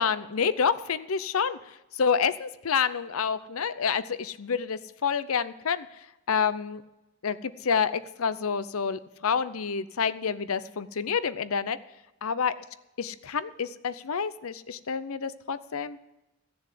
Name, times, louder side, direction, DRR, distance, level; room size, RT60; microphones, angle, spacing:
voice 1, 0.0-1.6 1.9-5.9 6.3-6.8 7.2-11.8 12.2-12.5 13.0-16.0, left 6 dB, 85° left, 15 dB, 0.6 m, -28 dB
15.0 x 7.0 x 7.6 m, 0.95 s
head